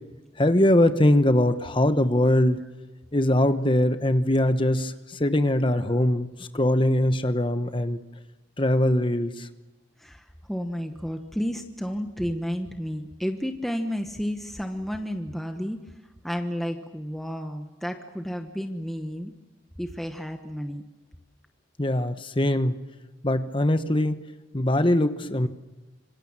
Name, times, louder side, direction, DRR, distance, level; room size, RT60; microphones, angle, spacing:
voice 1, 0.4-2.6 3.1-4.9 5.2-6.3 6.5-8.0 8.6-9.3 21.8-22.8 23.2-24.2 24.5-25.5, left 1 dB, 25° left, 10 dB, 1.1 m, -21 dB
voice 2, 10.0-15.8 16.2-19.3 19.8-20.8, equal, ahead, 5 dB, 1.1 m, -31 dB
26.5 x 25.0 x 7.4 m, 1.1 s
head